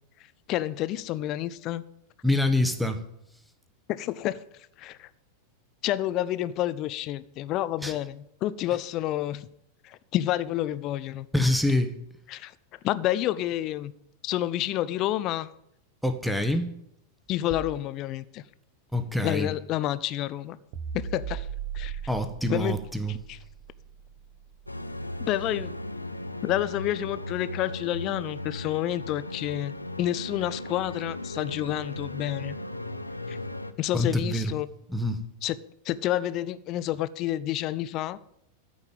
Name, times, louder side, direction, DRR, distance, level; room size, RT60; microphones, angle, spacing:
voice 1, 0.5-1.8 3.9-4.4 4.8-5.1 5.8-9.5 9.8-11.3 12.3-12.5 12.8-13.9 14.2-15.5 17.3-18.4 19.2-20.6 20.9-21.5 21.7-22.0 22.5-22.8 23.1-23.4 25.2-25.7 26.4-32.6 33.3-33.4 33.8-34.7 35.4-35.6 35.8-38.2, left 13 dB, 40° left, 0.6 m, -29 dB
voice 2, 2.2-3.0 7.8-7.9 11.3-12.0 16.0-16.7 18.9-19.5 22.1-23.1 33.9-34.5 34.9-35.2, left 1 dB, ahead, 1.4 m, -25 dB
sound 1, 20.7-25.2, right 8 dB, 45° right, 1.1 m, -38 dB
sound 2, 24.7-33.7, left 2 dB, 85° left, 0.8 m, -37 dB
13.5 x 5.5 x 9.0 m
figure-of-eight pair, 90°, 0 cm